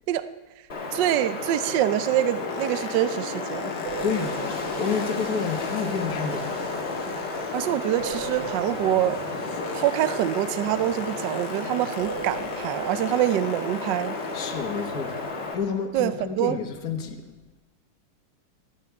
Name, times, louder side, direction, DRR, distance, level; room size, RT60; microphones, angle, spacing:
Wind, 0.7-15.5, left 3 dB, 30° left, 1.5 m, -33 dB
voice 1, 0.9-3.7 7.5-9.2 9.7-14.2 15.9-16.6, right 12 dB, 70° right, 1.1 m, -25 dB
Boat Water vehicle, 2.0-8.0 8.3-14.8 15.4-15.5, left 6 dB, 90° left, 2.1 m, -39 dB
sound 1, 3.8-7.1 8.0-11.7 12.0-14.5, right 7 dB, 35° right, 0.9 m, -41 dB
voice 2, 4.0-6.6 14.3-15.2 15.5-17.3, left 6 dB, 50° left, 1.6 m, -30 dB
25.5 x 9.3 x 4.6 m
omnidirectional pair, 2.3 m